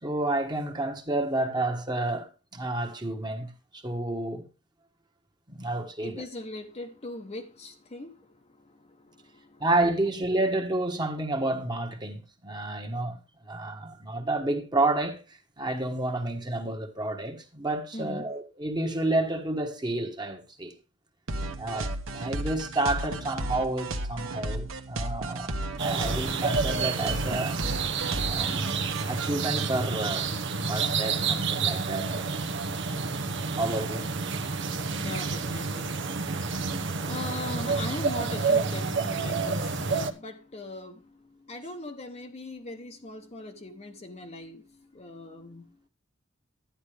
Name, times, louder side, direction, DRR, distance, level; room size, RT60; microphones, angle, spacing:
voice 1, 0.0-4.4 5.5-6.3 9.6-15.2 15.6-20.7 21.6-27.6 28.2-30.3 30.7-32.1 33.6-34.1, right 2 dB, 20° right, 1.4 m, -30 dB
voice 2, 6.0-9.6 17.9-18.3 35.0-45.7, left 2 dB, 30° left, 1.0 m, -40 dB
sound 1, 21.3-29.7, right 1 dB, 80° right, 1.3 m, -34 dB
sound 2, 25.8-40.1, right 4 dB, 60° right, 0.9 m, -29 dB
11.5 x 9.8 x 3.4 m
head